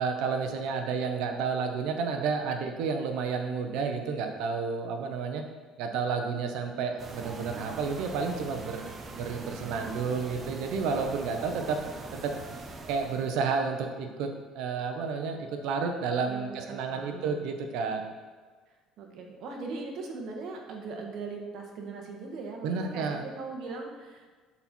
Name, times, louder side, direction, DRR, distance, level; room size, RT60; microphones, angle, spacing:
voice 1, 0.0-5.4 5.8-8.9 9.1-11.8 12.1-12.3 12.9-14.3 14.5-18.0 22.6-23.2, right 5 dB, 75° right, 5 dB, 1.0 m, -31 dB
sound 1, 7.0-13.4, right 3 dB, 30° right, 0.8 m, -42 dB
voice 2, 9.1-10.4 16.3-17.5 19.0-24.3, right 3 dB, 55° right, 1 dB, 1.6 m, -40 dB
11.5 x 4.3 x 4.5 m, 1.4 s
cardioid pair, 140°, 0 cm